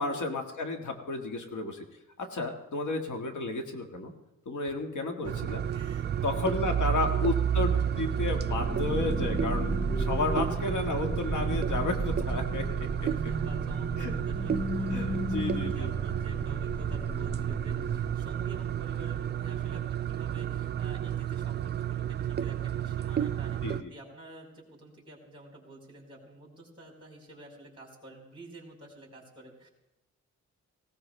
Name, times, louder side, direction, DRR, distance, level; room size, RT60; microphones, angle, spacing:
voice 1, 0.0-1.8 2.2-4.1 4.5-5.6 6.2-13.1 14.0-14.1 14.9-15.9 23.6-23.9, left 3 dB, 75° left, 4 dB, 1.8 m, -32 dB
voice 2, 5.2-7.3 10.5-10.9 13.0-29.7, right 1 dB, 15° right, -1 dB, 4.3 m, -50 dB
sound 1, 5.3-23.8, right 10 dB, 35° right, 0.4 m, -31 dB
sound 2, 7.8-18.4, right 1 dB, 5° left, 0.7 m, -34 dB
18.5 x 18.0 x 3.3 m, 1.0 s
wide cardioid pair, 145°, 30 cm